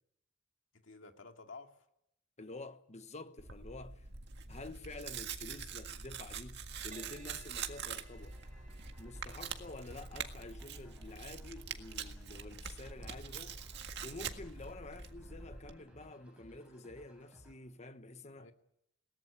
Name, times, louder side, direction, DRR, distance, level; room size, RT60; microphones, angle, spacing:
voice 1, 0.7-1.9 18.4-18.5, left 3 dB, 75° left, 2.3 m, -52 dB
voice 2, 2.4-4.1 4.5-8.4 9.0-13.6 14.0-18.5, left 2 dB, 35° left, 1.2 m, -49 dB
Tearing, 3.4-15.7, right 6 dB, 60° right, 1.8 m, -45 dB
Crash cymbal, 6.9-14.6 15.2-15.5, right 3 dB, 45° right, 3.3 m, -62 dB
sound 1, 8.2-17.5, equal, 5° right, 7.5 m, -60 dB
22.0 x 18.5 x 8.7 m
head